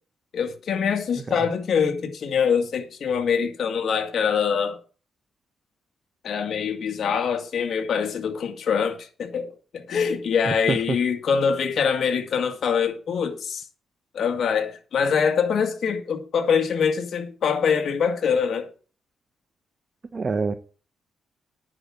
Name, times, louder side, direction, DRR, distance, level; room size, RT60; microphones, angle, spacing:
voice 1, 0.3-4.8 6.2-13.6 14.1-18.7, left 6 dB, 65° left, 2.2 m, -24 dB
voice 2, 10.5-10.8 20.1-20.5, right 4 dB, 35° right, 1.0 m, -26 dB
9.9 x 6.4 x 7.5 m
cardioid pair, 85°, 0 cm